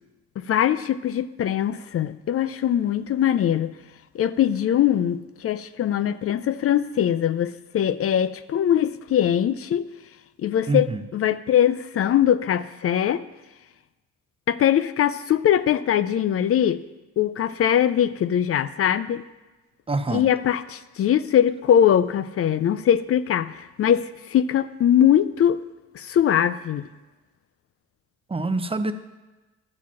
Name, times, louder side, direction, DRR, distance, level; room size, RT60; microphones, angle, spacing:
voice 1, 0.4-3.7 4.1-9.9 10.4-13.2 14.5-16.8 17.2-19.2 20.1-25.6 25.9-26.9, left 10 dB, 50° left, 14 dB, 0.5 m, -21 dB
voice 2, 10.7-11.0 19.9-20.3 28.3-28.9, right 2 dB, 20° right, 10 dB, 0.6 m, -25 dB
11.5 x 4.9 x 7.1 m, 1.1 s
cardioid pair, 90°, 30 cm